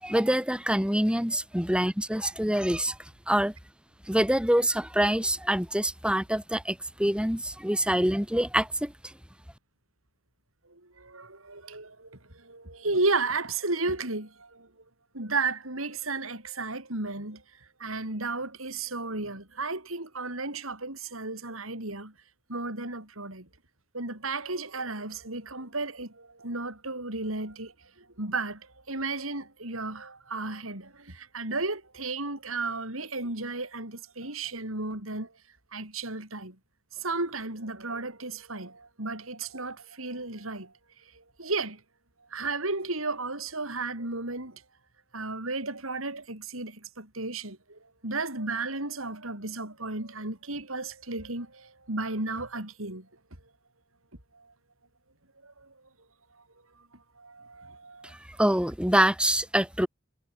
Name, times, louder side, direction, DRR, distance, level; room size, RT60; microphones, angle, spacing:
voice 1, 0.0-3.0 3.3-3.5 4.1-8.9 58.4-59.9, right 1 dB, 5° right, 4.3 m, -25 dB
voice 2, 10.7-14.7 15.1-17.4 17.8-22.1 22.5-23.5 23.9-27.7 28.2-28.6 28.9-35.3 35.7-36.6 37.0-40.7 41.4-41.8 42.3-44.6 45.1-53.1 54.3-54.5 55.4-55.7 57.2-58.1, right 3 dB, 80° right, 7.1 m, -33 dB
head